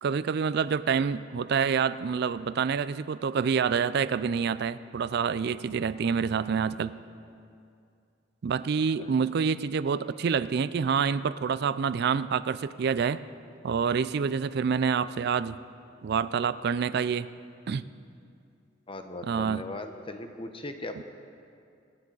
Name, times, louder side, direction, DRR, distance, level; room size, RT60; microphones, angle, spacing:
voice 1, 0.0-6.9 8.4-13.2 13.6-15.6 16.0-17.3 17.7-17.8 19.2-19.6, right 6 dB, 60° right, 15 dB, 0.4 m, -27 dB
voice 2, 18.9-21.0, left 2 dB, 30° left, 7 dB, 0.8 m, -39 dB
25.0 x 9.9 x 3.9 m, 2.4 s
head